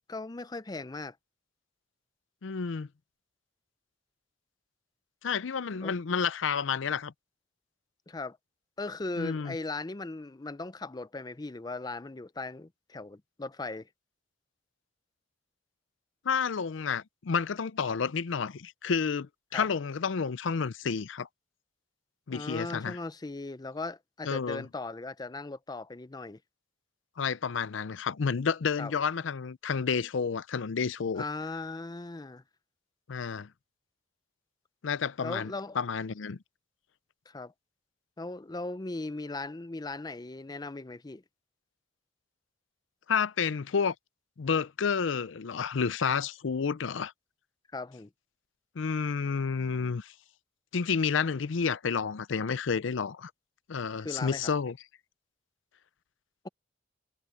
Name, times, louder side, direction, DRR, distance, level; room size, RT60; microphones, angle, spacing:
voice 1, 0.1-1.2 5.8-5.9 8.1-8.4 8.8-13.9 19.5-19.7 22.3-26.4 28.8-28.9 31.1-32.4 35.2-35.8 37.3-37.5 38.2-41.2 47.7-48.1 54.0-54.5, left 3 dB, 20° left, 0.5 m, -38 dB
voice 2, 2.4-2.9 5.2-7.1 9.2-9.6 16.2-21.3 22.3-23.0 24.2-24.7 27.2-31.2 33.1-33.5 34.8-36.4 43.1-43.9 44.4-47.1 48.8-50.1 50.7-53.3 53.7-54.8, left 6 dB, 70° left, 0.5 m, -30 dB
head